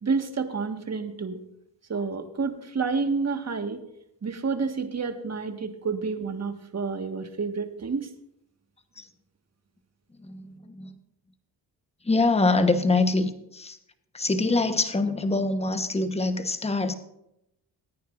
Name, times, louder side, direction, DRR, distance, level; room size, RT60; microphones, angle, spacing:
voice 1, 0.0-1.4 1.9-3.8 4.2-8.1, right 4 dB, 40° right, 6 dB, 1.6 m, -29 dB
voice 2, 10.2-10.9 12.0-13.8 14.1-16.9, left 3 dB, 15° left, 9 dB, 1.1 m, -24 dB
20.0 x 9.4 x 2.5 m, 0.81 s
cardioid pair, 65°, 41 cm